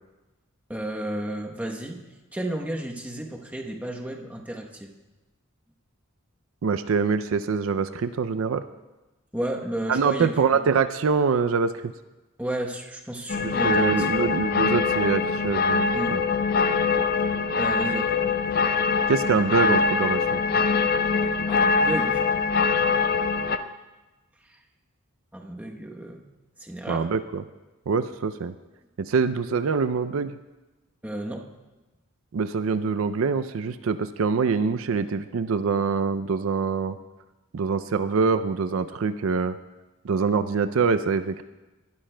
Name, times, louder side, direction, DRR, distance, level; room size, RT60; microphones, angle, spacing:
voice 1, 0.7-2.0 2.3-4.9 9.3-10.6 12.4-14.3 15.9-16.2 17.6-18.2 21.5-22.3 23.4-23.7 24.5-24.6 25.3-26.2 26.6-27.1 31.0-31.5, right 1 dB, 5° right, 0 dB, 0.9 m, -32 dB
voice 2, 6.6-8.6 9.9-11.7 13.4-16.2 19.1-20.4 26.9-27.4 27.9-28.5 29.0-30.4 32.3-37.0 37.5-39.6 40.0-41.4, right 5 dB, 70° right, 11 dB, 0.4 m, -24 dB
sound 1, 13.3-23.6, left 5 dB, 45° left, 0.5 m, -23 dB
19.0 x 12.5 x 2.2 m, 1.1 s
head